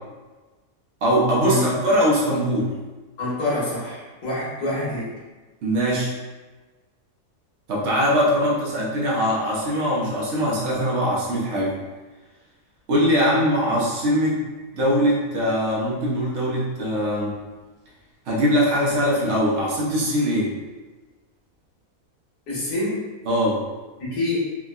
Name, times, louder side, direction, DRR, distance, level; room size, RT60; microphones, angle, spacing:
voice 1, 1.0-2.7 5.6-6.1 7.7-11.8 12.9-14.4 14.7-17.4 18.3-20.5 23.3-23.6, equal, 55° right, -5 dB, 0.9 m, -21 dB
voice 2, 3.2-5.1 22.5-23.1 24.0-24.4, left 2 dB, 80° left, -7 dB, 1.5 m, -26 dB
3.5 x 2.1 x 2.3 m, 1.2 s
omnidirectional pair, 1.6 m